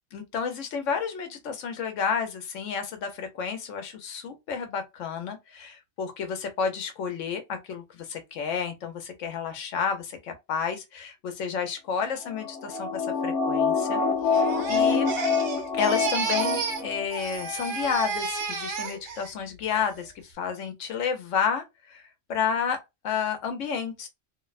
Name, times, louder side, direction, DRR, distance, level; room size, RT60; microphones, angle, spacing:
voice 1, 0.1-15.1 15.7-22.8 23.0-24.1, left 6 dB, 80° left, 1.0 m, -31 dB
sound 1, 12.3-17.0 17.4-17.5, left 5 dB, 60° left, 0.7 m, -26 dB
Crying sobbing, 14.3-16.9 17.1-19.3 19.7-20.1, right 4 dB, 65° right, 1.0 m, -31 dB
2.6 x 2.0 x 2.3 m
omnidirectional pair, 1.3 m